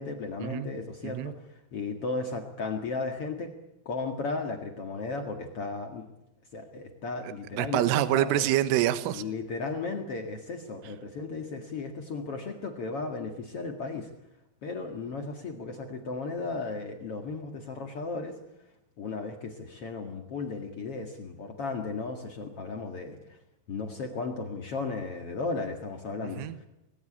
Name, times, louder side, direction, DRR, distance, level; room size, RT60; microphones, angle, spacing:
voice 1, 0.0-3.5 3.8-6.1 6.5-8.5 9.1-14.1 14.6-18.4 19.0-23.4 23.7-26.5, left 3 dB, 85° left, 4 dB, 1.2 m, -35 dB
voice 2, 7.6-9.2 26.2-26.7, right 13 dB, 75° right, 12 dB, 3.6 m, -26 dB
25.5 x 20.5 x 8.7 m, 0.88 s
omnidirectional pair, 6.0 m